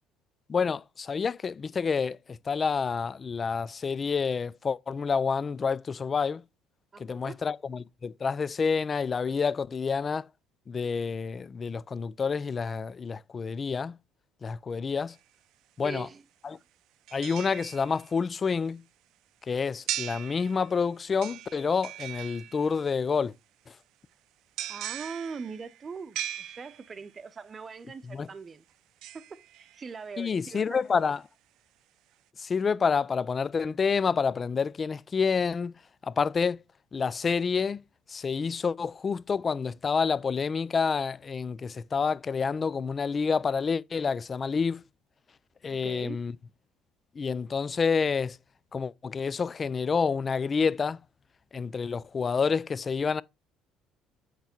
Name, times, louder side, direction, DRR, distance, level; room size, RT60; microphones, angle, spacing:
voice 1, 0.5-6.4 7.0-10.3 10.7-13.9 14.4-15.2 15.8-16.1 16.4-16.6 17.1-18.8 19.5-23.3 23.7-23.8 28.0-28.3 30.2-31.2 32.4-36.6 36.9-37.8 38.1-44.8 45.6-46.4 47.1-48.4 48.7-51.0 51.5-53.2, left 5 dB, 30° left, 0.4 m, -28 dB
voice 2, 6.9-7.4 15.8-16.2 16.5-16.6 24.7-28.6 29.1-30.8 45.7-46.2, right 5 dB, 30° right, 0.8 m, -41 dB
sound 1, 15.1-15.2 17.1-18.3 19.9-20.8 21.2-22.9 24.6-27.1 29.0-30.2 30.7-30.8, right 12 dB, 70° right, 0.6 m, -39 dB
8.1 x 4.6 x 4.4 m
cardioid pair, 95°, 0 cm